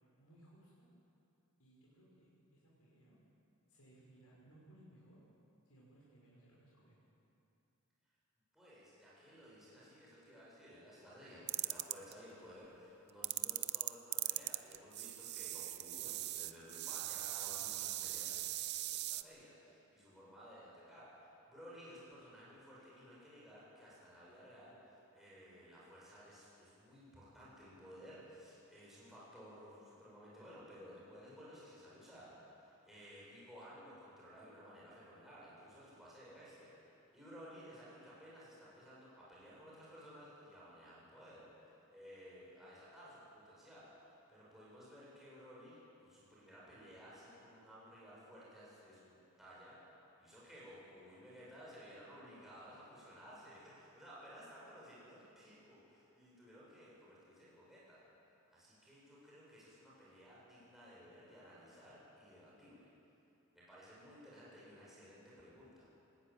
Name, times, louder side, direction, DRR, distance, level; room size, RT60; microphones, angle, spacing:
voice 1, 0.2-0.9 1.6-3.2 3.7-5.2 5.6-6.9, right 1 dB, 85° left, -6 dB, 5.6 m, -63 dB
voice 2, 8.5-18.4 18.8-58.1 58.5-62.9 63.5-65.9, equal, ahead, -8 dB, 7.4 m, -56 dB
sound 1, 11.5-12.1 13.2-19.2, right 15 dB, 50° right, 0.6 m, -40 dB
20.0 x 18.0 x 9.2 m, 2.8 s
head